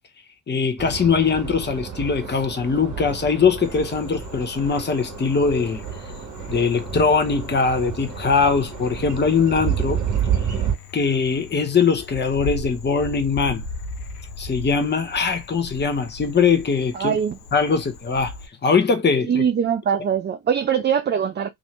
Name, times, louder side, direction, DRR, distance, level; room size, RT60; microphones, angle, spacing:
voice 1, 0.5-5.8 6.5-10.0 10.4-10.6 10.9-13.6 14.4-17.1 17.5-18.3 18.6-19.4, left 5 dB, 20° left, 0.9 m, -21 dB
sound 1, 0.8-10.7, right 8 dB, 40° right, 1.4 m, -30 dB
Frog, 3.6-18.5, left 2 dB, 85° left, 0.7 m, -38 dB
voice 2, 16.9-17.4 19.3-21.5, right 7 dB, 25° right, 0.5 m, -22 dB
2.8 x 2.6 x 3.2 m
figure-of-eight pair, 45°, 46 cm